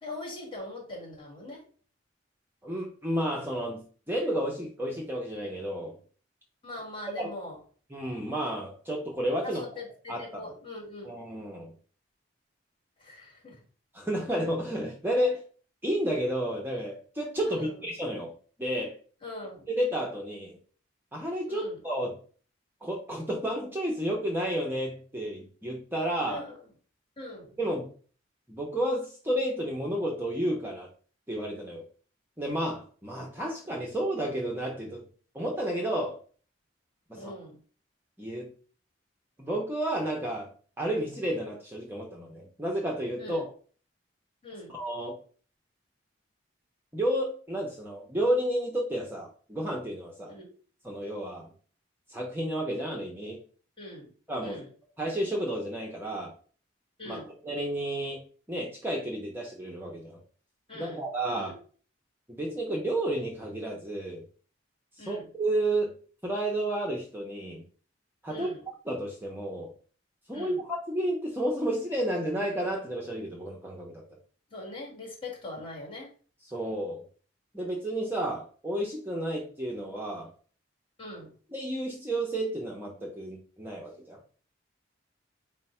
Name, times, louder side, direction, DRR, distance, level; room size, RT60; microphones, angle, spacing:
voice 1, 0.0-1.6 6.6-7.6 9.4-11.2 13.0-13.6 17.5-17.9 19.2-19.7 21.5-21.8 26.3-26.6 27.2-27.6 37.1-37.6 43.2-43.5 44.4-44.8 50.2-50.5 53.8-54.1 54.4-54.7 57.0-57.3 60.7-61.1 61.3-61.5 65.0-65.3 68.3-68.6 70.3-70.6 74.5-76.1 81.0-81.3, left 2 dB, 30° left, -2 dB, 1.6 m, -42 dB
voice 2, 2.6-6.0 7.2-7.3 7.9-9.6 10.1-10.4 11.0-11.7 13.9-15.4 15.8-18.3 18.6-19.0 19.8-20.6 21.1-22.1 22.8-26.4 27.6-27.9 28.5-30.9 31.3-31.8 32.4-35.0 35.3-36.2 37.1-37.3 38.2-38.5 39.4-40.5 40.8-43.4 44.7-45.2 46.9-50.4 50.8-51.5 52.1-53.4 54.3-54.6 55.0-56.3 57.1-58.2 58.5-60.2 60.7-61.5 62.3-64.2 65.0-65.9 66.2-67.6 68.2-69.7 70.3-74.0 76.5-77.0 77.5-80.3 81.5-84.2, right 1 dB, 10° right, -1 dB, 0.6 m, -31 dB
4.5 x 2.0 x 4.2 m, 0.42 s
head